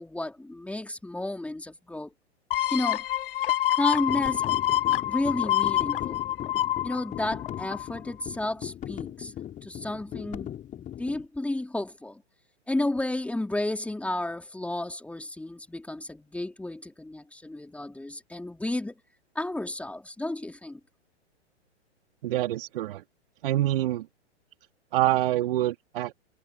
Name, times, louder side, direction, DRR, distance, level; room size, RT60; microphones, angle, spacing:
voice 1, 0.0-2.1 2.7-3.1 3.7-4.5 5.1-6.2 6.8-9.3 9.6-12.2 12.7-19.0 19.3-20.8, left 2 dB, 5° left, 3.9 m, -32 dB
sound 1, 2.5-8.0 8.4-8.5, left 13 dB, 50° left, 0.5 m, -27 dB
sound 2, 3.9-11.3, left 11 dB, 20° left, 4.8 m, -39 dB
voice 2, 22.2-23.0 23.4-24.1 24.9-26.1, right 14 dB, 50° right, 2.9 m, -26 dB
figure-of-eight pair, 110°, 35 cm